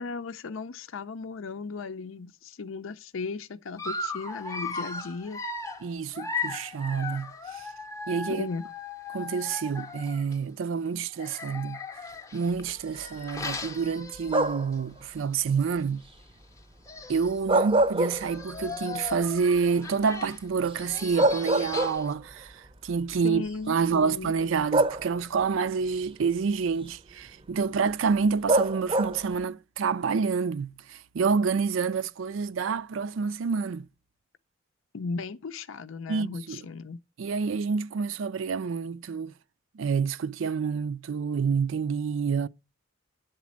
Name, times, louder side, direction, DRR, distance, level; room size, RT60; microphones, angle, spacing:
voice 1, 0.0-5.4 8.4-8.7 23.2-24.3 34.9-37.0, left 4 dB, 75° left, 0.5 m, -36 dB
Dog, 3.8-10.4 11.1-14.7 15.2-15.3 15.6-15.7 16.6-16.7 16.8-17.4 18.0-22.1, left 4 dB, 15° left, 0.6 m, -38 dB
voice 2, 5.8-7.7 8.1-8.5 9.1-11.8 12.3-16.0 17.1-33.8 36.1-36.6 37.2-39.3 39.7-42.5, right 5 dB, 70° right, 0.4 m, -28 dB
sound 1, 14.3-14.8 17.3-18.7 19.1-19.2 20.7-20.8 21.2-22.3 23.3-23.5 24.7-25.4 28.5-29.3, right 2 dB, 25° right, 0.6 m, -25 dB
10.5 x 4.2 x 7.2 m
head